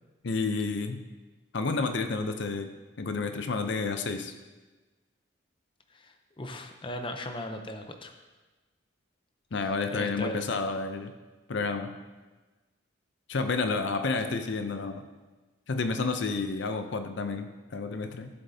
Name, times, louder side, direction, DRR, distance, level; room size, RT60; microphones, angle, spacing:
voice 1, 0.2-1.0 1.5-2.7 3.0-4.3 9.5-11.1 11.5-12.0 13.3-15.0 15.7-18.3, left 4 dB, 60° left, 8 dB, 0.6 m, -30 dB
voice 2, 5.9-8.1 9.6-10.5, left 1 dB, 25° left, 5 dB, 0.6 m, -38 dB
14.0 x 7.6 x 2.8 m, 1.2 s
head